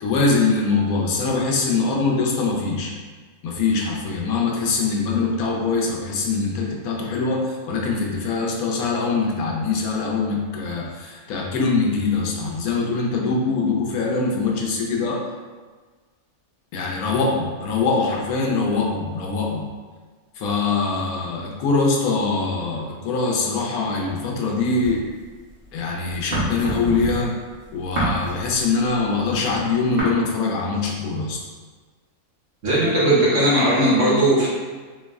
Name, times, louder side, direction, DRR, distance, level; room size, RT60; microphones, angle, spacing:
voice 1, 0.0-2.9 3.4-15.2 16.7-19.7 20.4-25.0 25.7-27.4 27.7-31.4, left 4 dB, 80° left, -1 dB, 1.1 m, -23 dB
sound 1, 24.8-25.7 26.0-30.0, right 1 dB, 45° right, 1.2 m, -28 dB
voice 2, 32.6-34.5, right 1 dB, 60° right, -8 dB, 1.4 m, -18 dB
3.9 x 2.1 x 3.4 m, 1.4 s
omnidirectional pair, 1.5 m